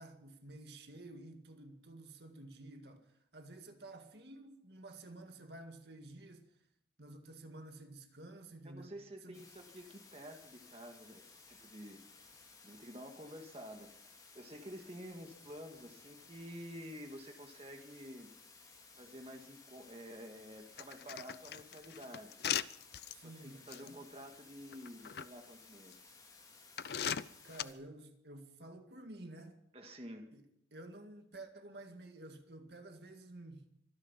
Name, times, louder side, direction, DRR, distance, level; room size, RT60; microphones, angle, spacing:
voice 1, 0.0-6.6 7.0-8.9 9.2-9.4 23.1-24.0 27.4-29.6 30.3-30.4 30.7-33.7, right 2 dB, 70° right, 2.1 m, -52 dB
voice 2, 8.7-12.0 12.6-18.3 19.0-22.4 23.2-26.1 29.7-30.3, equal, 35° right, 1.8 m, -50 dB
sound 1, 9.3-27.7, left 4 dB, 20° left, 3.8 m, -59 dB
sound 2, 20.8-23.1 23.7-23.9 24.7-25.3 25.9-26.0 26.8-27.6, left 9 dB, 65° left, 0.6 m, -38 dB
25.0 x 9.8 x 5.7 m
head